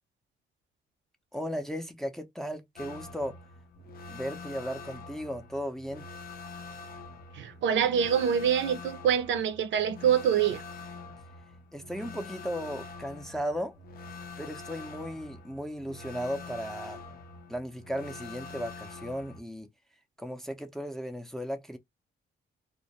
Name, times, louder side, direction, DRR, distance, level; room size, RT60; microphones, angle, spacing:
voice 1, 1.3-3.4 4.1-6.1 11.7-13.8 14.4-17.0 17.5-19.7 20.2-21.8, equal, ahead, 0.5 m, -36 dB
sound 1, 2.8-19.4, left 3 dB, 50° left, 0.5 m, -45 dB
voice 2, 7.3-10.6, right 8 dB, 70° right, 0.5 m, -25 dB
2.1 x 2.1 x 2.7 m
cardioid pair, 90°, 20 cm